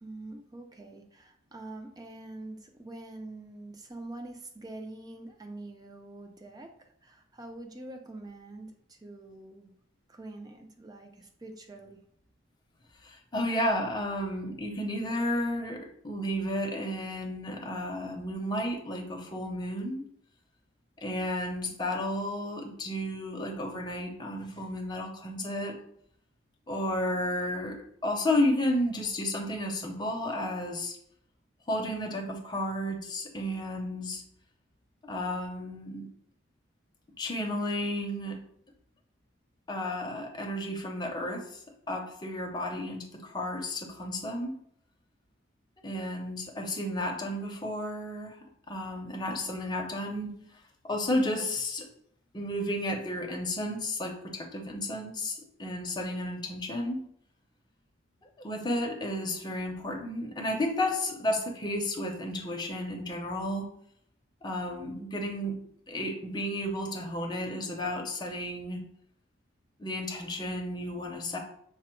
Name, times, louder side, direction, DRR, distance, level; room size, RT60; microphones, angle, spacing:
voice 1, 0.0-9.7 10.1-12.0, right 2 dB, 20° right, 4 dB, 0.5 m, -45 dB
voice 2, 13.0-20.0 21.0-25.8 26.7-31.0 31.7-34.2 35.0-36.1 37.2-38.4 39.7-41.6 41.9-44.5 45.8-48.4 48.7-50.3 50.8-51.9 52.3-57.1 58.4-63.7 64.4-65.6 65.9-68.9 69.8-71.4, left 1 dB, 20° left, 2 dB, 0.6 m, -32 dB
5.9 x 2.0 x 4.4 m, 0.68 s
head